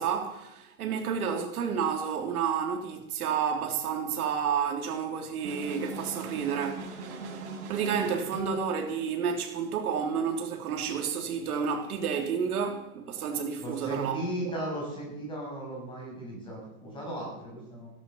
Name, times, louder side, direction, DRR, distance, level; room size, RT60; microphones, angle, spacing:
voice 1, 0.0-7.4 7.7-14.2 14.4-14.6, right 7 dB, 80° right, 3.4 m, -30 dB
sound 1, 5.4-8.6, right 4 dB, 55° right, 6.2 m, -40 dB
voice 2, 13.6-17.9, right 1 dB, 10° left, 7.1 m, -36 dB
16.5 x 12.0 x 7.1 m
supercardioid pair, 170°, 43 cm